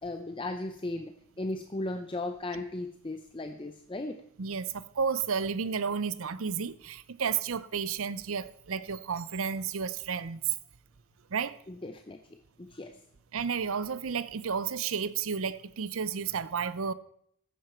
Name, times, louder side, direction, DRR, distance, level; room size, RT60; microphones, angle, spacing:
voice 1, 0.0-4.2 11.7-12.2 12.6-13.0, left 2 dB, 25° left, 0.6 m, -36 dB
voice 2, 4.4-10.4 11.3-11.6 13.3-16.9, right 6 dB, 70° right, 0.6 m, -32 dB
14.5 x 10.0 x 4.4 m
head